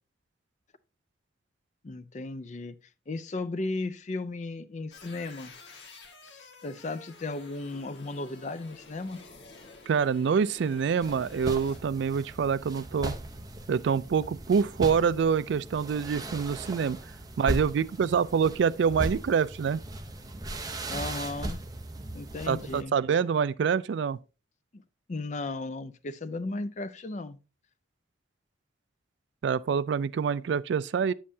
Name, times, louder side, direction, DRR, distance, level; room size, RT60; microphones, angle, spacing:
voice 1, 1.8-2.8 3.1-5.5 6.2-9.2 20.9-21.6 22.1-22.9 24.7-24.8 25.1-27.4, left 2 dB, 40° left, 0.5 m, -35 dB
sound 1, 4.9-11.8, left 3 dB, 65° left, 1.6 m, -50 dB
voice 2, 9.9-13.1 13.7-17.0 17.4-19.8 22.5-24.2 29.4-31.1, right 6 dB, 65° right, 0.3 m, -26 dB
sound 2, 11.0-22.8, right 2 dB, 20° right, 0.7 m, -38 dB
8.5 x 7.4 x 2.7 m
head